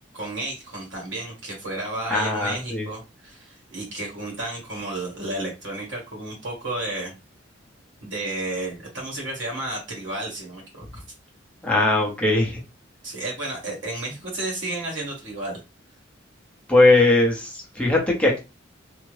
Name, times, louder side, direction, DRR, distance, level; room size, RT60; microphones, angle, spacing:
voice 1, 0.1-7.2 8.0-11.0 13.0-15.6, right 2 dB, 70° right, -2 dB, 1.4 m, -32 dB
voice 2, 2.1-2.9 11.6-12.6 16.7-18.4, left 2 dB, 5° left, -2 dB, 0.7 m, -19 dB
3.5 x 2.0 x 3.1 m, 0.28 s
head